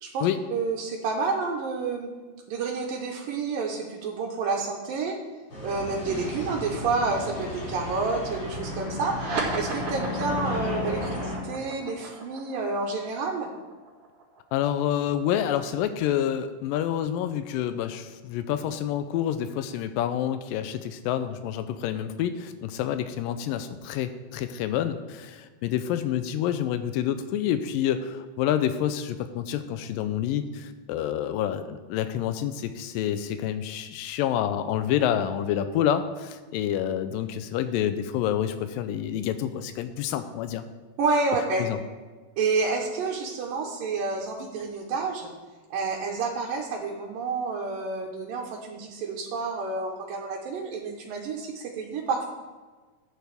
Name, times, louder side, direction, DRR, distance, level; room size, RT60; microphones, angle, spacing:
voice 1, 0.5-2.1 2.5-5.1 5.6-9.2 9.5-13.5 41.0-41.6 42.4-45.3 45.7-52.2, right 4 dB, 90° right, -2 dB, 2.7 m, -29 dB
sound 1, 5.5-11.4, left 2 dB, 40° left, 2.7 m, -34 dB
sound 2, 9.0-15.9, right 3 dB, 45° right, 3.1 m, -36 dB
voice 2, 14.5-40.6 41.6-41.8, left 10 dB, 90° left, 10 dB, 2.3 m, -28 dB
14.0 x 9.1 x 3.5 m, 1.3 s
omnidirectional pair, 3.9 m